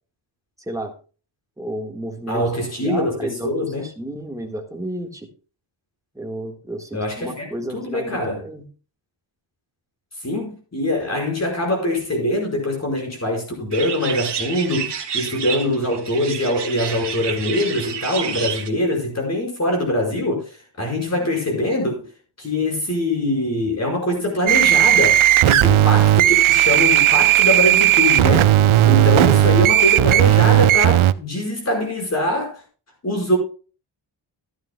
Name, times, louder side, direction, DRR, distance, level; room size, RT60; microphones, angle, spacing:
voice 1, 0.6-0.9 1.6-2.4 2.8-5.3 6.1-8.7, right 1 dB, 5° right, 1.6 m, -32 dB
voice 2, 2.3-3.9 6.9-7.5 7.7-8.4 10.2-21.9 22.4-28.5 28.8-32.6 33.0-33.4, left 1 dB, 35° left, 5.2 m, -23 dB
sound 1, 13.7-18.7, right 7 dB, 60° right, 1.6 m, -29 dB
sound 2, 24.5-31.1, right 13 dB, 90° right, 0.6 m, -15 dB
14.5 x 11.0 x 2.2 m
wide cardioid pair, 160°, 47 cm